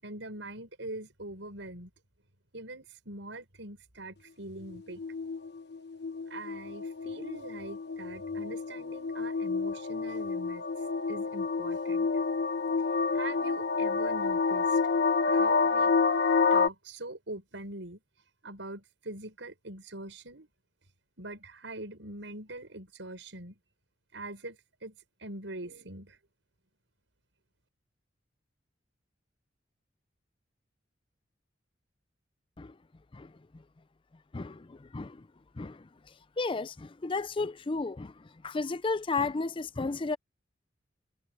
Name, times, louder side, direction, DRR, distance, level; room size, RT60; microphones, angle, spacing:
voice 1, 0.0-1.9 2.5-5.0 6.3-10.6 11.1-12.1 13.1-14.8 15.3-15.9 16.5-18.0 18.4-20.5 21.2-23.6 24.1-26.2, right 2 dB, 75° right, 6.7 m, -43 dB
sound 1, 4.7-16.7, left 4 dB, 60° left, 1.2 m, -29 dB
voice 2, 33.1-33.6 34.3-35.3 35.5-35.9 36.4-40.2, left 3 dB, 25° left, 0.5 m, -33 dB
head